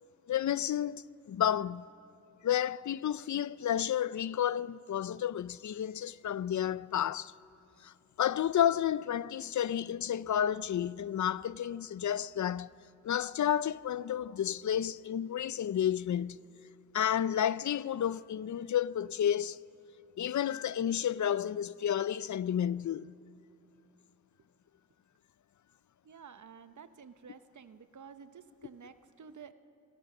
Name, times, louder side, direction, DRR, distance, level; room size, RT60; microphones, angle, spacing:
voice 1, 0.3-1.9 2.4-7.3 7.8-12.7 13.0-16.4 16.9-19.6 20.2-23.1, left 10 dB, 75° left, 0.5 m, -31 dB
voice 2, 26.0-29.5, right 6 dB, 80° right, 0.9 m, -51 dB
24.5 x 21.5 x 6.1 m
cardioid pair, 45°, 29 cm